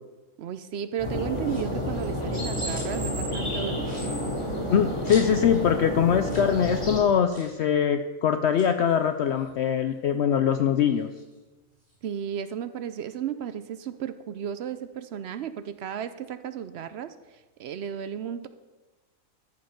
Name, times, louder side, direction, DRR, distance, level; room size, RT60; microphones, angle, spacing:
voice 1, 0.4-4.3 12.0-18.5, right 9 dB, 65° right, 12 dB, 0.7 m, -34 dB
sound 1, 1.0-7.0, left 1 dB, 20° left, 2.7 m, -30 dB
sound 2, 1.4-1.8 2.3-3.1 3.4-3.5 3.8-5.6 5.9-6.0 6.2-6.5 6.8-6.9 7.3-7.6 8.4-10.1 10.5-12.0, left 1 dB, 40° left, 4.5 m, -47 dB
voice 2, 4.7-11.1, left 8 dB, 65° left, 8 dB, 0.7 m, -23 dB
13.5 x 5.3 x 5.8 m, 1.2 s
omnidirectional pair, 1.4 m